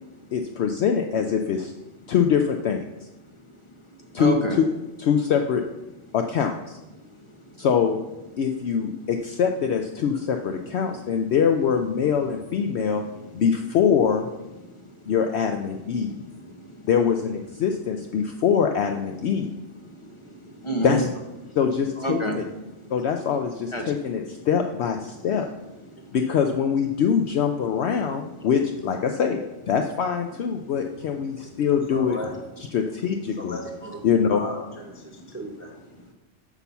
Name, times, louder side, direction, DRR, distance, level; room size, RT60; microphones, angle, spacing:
voice 1, 0.3-1.7 2.1-2.8 4.1-4.4 5.0-5.6 6.1-6.8 7.6-8.0 8.4-13.0 13.3-14.3 15.1-16.1 16.9-19.5 20.8-21.1 21.6-22.4 22.9-25.5 26.1-29.4 29.7-32.2 32.7-33.6 34.0-34.4, left 7 dB, 65° left, 5 dB, 0.8 m, -23 dB
voice 2, 3.5-4.6 6.1-6.2 6.9-7.7 8.9-9.0 10.8-11.2 12.7-13.3 14.6-15.1 15.7-16.9 18.2-18.3 19.8-21.0 21.4-21.6 22.0-23.0 23.7-24.1 25.9-26.2 28.4-28.5 30.6-31.6 35.0-35.3, right 1 dB, 25° left, 2 dB, 0.9 m, -33 dB
voice 3, 31.9-32.4 33.3-35.8, left 1 dB, 10° right, 1 dB, 0.7 m, -37 dB
6.0 x 5.6 x 6.9 m, 1.0 s
omnidirectional pair, 1.3 m